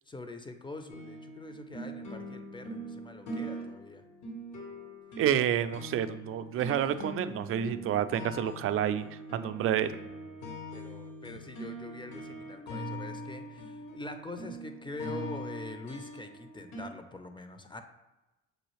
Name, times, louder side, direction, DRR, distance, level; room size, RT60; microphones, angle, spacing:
voice 1, 0.1-4.0 10.7-17.8, left 2 dB, 15° left, 7 dB, 0.6 m, -44 dB
sound 1, 0.9-16.8, equal, 60° left, 1.2 m, -42 dB
voice 2, 5.2-10.0, right 10 dB, 45° right, 11 dB, 0.4 m, -29 dB
6.2 x 2.4 x 3.2 m, 1.0 s
hypercardioid pair, 65°, 33 cm